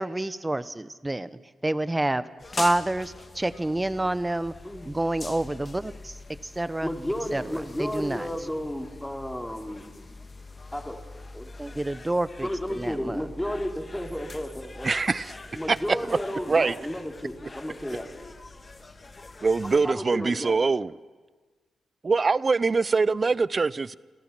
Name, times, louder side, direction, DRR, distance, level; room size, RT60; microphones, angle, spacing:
voice 1, 0.0-2.3 2.5-4.5 4.8-6.9 7.3-8.3 11.6-13.3, right 1 dB, 20° right, 15 dB, 0.9 m, -28 dB
sound 1, 2.4-19.9, left 3 dB, 35° left, 1.6 m, -43 dB
voice 2, 6.8-9.9 10.7-11.0 11.3-11.5 12.4-15.0 15.6-18.1 19.6-20.6, equal, 10° left, 2 dB, 3.3 m, -33 dB
voice 3, 14.8-15.3 15.7-16.0 16.5-16.8 19.4-20.9 22.0-24.0, right 4 dB, 45° right, 20 dB, 0.5 m, -23 dB
29.5 x 14.5 x 6.0 m, 1.4 s
supercardioid pair, 45°, 0 cm